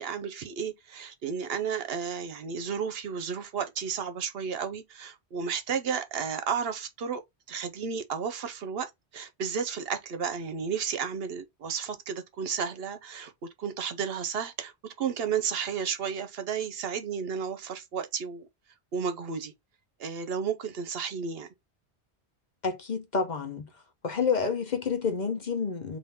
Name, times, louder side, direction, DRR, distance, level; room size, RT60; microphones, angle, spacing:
voice 1, 0.0-7.2 7.5-13.3 13.6-18.5 18.9-19.5 20.0-21.5, right 6 dB, 65° right, 0.9 m, -32 dB
voice 2, 22.6-23.7 24.0-26.0, left 5 dB, 45° left, 0.8 m, -29 dB
3.6 x 2.7 x 4.1 m
omnidirectional pair, 1.1 m